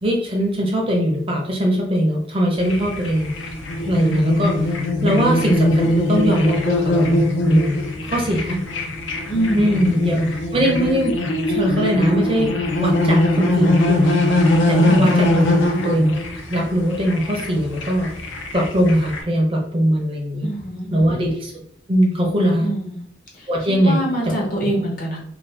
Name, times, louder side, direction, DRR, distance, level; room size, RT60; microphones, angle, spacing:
voice 1, 0.0-3.3 3.8-4.7 5.0-8.6 9.5-10.2 10.5-11.1 11.5-12.5 12.8-14.2 14.7-16.2 16.5-18.1 18.5-20.5 20.9-21.5 21.9-22.7 23.5-24.0 24.2-24.3 24.6-24.7, equal, 30° right, 0 dB, 0.5 m, -20 dB
sound 1, 2.6-19.2, left 1 dB, 75° left, 0.5 m, -21 dB
voice 2, 9.3-10.3 14.8-15.2 20.4-21.3 22.6-23.0 23.7-25.2, right 1 dB, 45° left, -2 dB, 0.8 m, -25 dB
2.4 x 2.3 x 3.2 m, 0.66 s
head